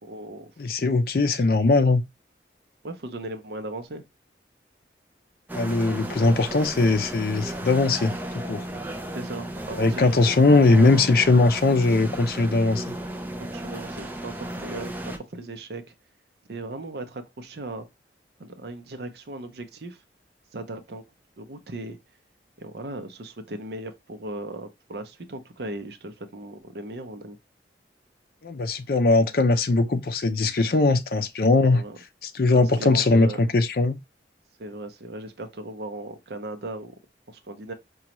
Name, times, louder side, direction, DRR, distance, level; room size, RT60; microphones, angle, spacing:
voice 1, 0.0-0.5 2.8-4.0 6.1-6.2 9.1-10.0 10.3-11.2 13.4-15.9 16.5-17.9 18.4-20.0 20.5-21.0 21.4-22.0 22.6-27.4 31.6-32.0 32.5-33.4 34.6-36.9 37.3-37.7, right 2 dB, 65° right, 0.6 m, -37 dB
voice 2, 0.6-2.0 5.5-8.7 9.8-12.9 28.4-31.8 32.2-34.0, left 3 dB, 55° left, 0.5 m, -20 dB
sound 1, 5.5-15.2, right 1 dB, 10° right, 0.4 m, -34 dB
5.0 x 2.3 x 2.9 m
head